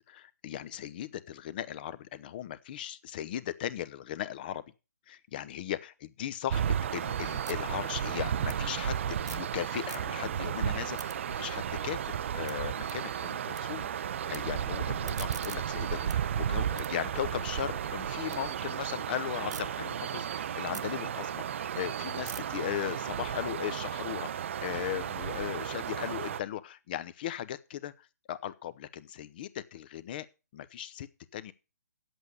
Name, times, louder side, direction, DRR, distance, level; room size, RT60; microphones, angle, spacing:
voice 1, 0.1-4.6 5.1-30.3 30.5-31.5, left 11 dB, 35° left, 15 dB, 0.8 m, -38 dB
sound 1, 6.5-26.4, right 9 dB, 45° right, 0.5 m, -34 dB
sound 2, 7.4-9.5 9.8-10.4 10.7-13.6 13.9-14.4 14.8-18.4 18.8-19.6 20.1-24.2, right 5 dB, 85° right, 1.2 m, -49 dB
9.6 x 8.0 x 6.7 m, 0.31 s
hypercardioid pair, 160°, 9 cm